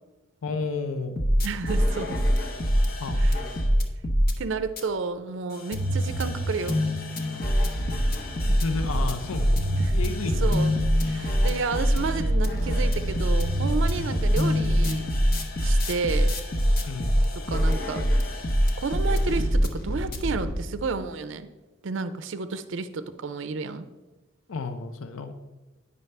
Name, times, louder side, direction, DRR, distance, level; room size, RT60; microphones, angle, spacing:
voice 1, 0.4-1.2 3.0-3.2 8.5-9.6 9.9-10.5 13.9-14.1 16.8-17.2 24.5-25.3, left 4 dB, 85° left, 8 dB, 0.5 m, -32 dB
sound 1, 1.2-4.3 4.8-4.9 5.5-20.5, equal, 45° left, 0.8 m, -24 dB
voice 2, 1.4-2.2 3.2-3.4 4.4-6.8 9.8-10.0 10.4-15.1 15.6-16.3 17.3-18.1 18.8-21.5 21.8-23.9, right 4 dB, 65° right, 11 dB, 0.4 m, -31 dB
9.4 x 5.4 x 3.3 m, 1.1 s
head